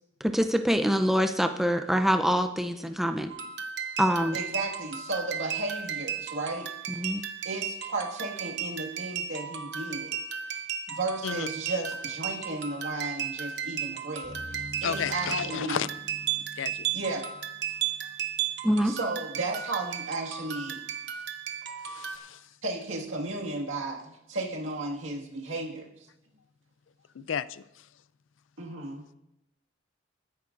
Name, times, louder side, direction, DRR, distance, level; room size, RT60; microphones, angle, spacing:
voice 1, 0.2-3.3 4.0-4.4 7.0-7.2 18.6-19.0, equal, ahead, 6 dB, 0.5 m, -25 dB
sound 1, 3.3-22.2, right 8 dB, 60° right, 0.9 m, -35 dB
voice 2, 4.3-6.7 7.0-10.2 10.5-10.6 10.9-15.8 16.3-16.4 16.9-17.2 18.8-20.8 22.6-25.9 28.6-29.0, right 2 dB, 80° right, -1 dB, 1.9 m, -34 dB
sound 2, 14.2-18.0, equal, 15° left, 4.8 m, -46 dB
voice 3, 14.8-15.9 16.6-16.9 21.9-22.4 27.3-27.6, left 7 dB, 75° left, 17 dB, 0.4 m, -32 dB
21.0 x 10.5 x 2.6 m, 0.85 s
head